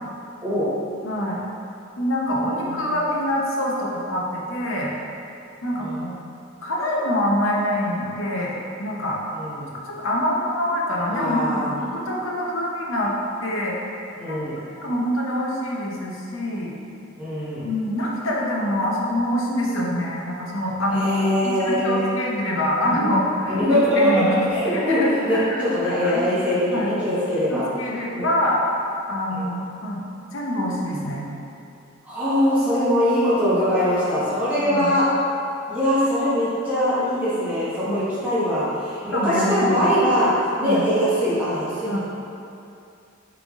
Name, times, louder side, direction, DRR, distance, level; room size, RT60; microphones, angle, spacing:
voice 1, 1.0-1.4 2.0-4.9 5.6-6.2 6.6-8.5 8.8-9.2 10.0-13.1 13.4-13.8 14.3-14.4 14.8-16.7 17.6-21.0 21.4-24.4 24.7-26.2 26.7-27.0 27.5-28.6 29.1-30.0 30.3-31.2 34.7-34.9 37.8-38.0 39.1-39.9 40.6-40.8 41.8-42.0, left 1 dB, 70° left, -3 dB, 0.7 m, -25 dB
voice 2, 2.4-2.9 5.8-6.1 9.3-9.7 11.1-11.7 14.1-14.6 17.2-17.7 20.9-22.1 23.6-24.2 24.5-27.7 28.1-28.3 29.3-29.5 32.0-35.1 35.7-40.3 40.6-42.0, equal, 5° right, -13 dB, 1.2 m, -22 dB
3.9 x 3.4 x 3.5 m, 2.6 s
head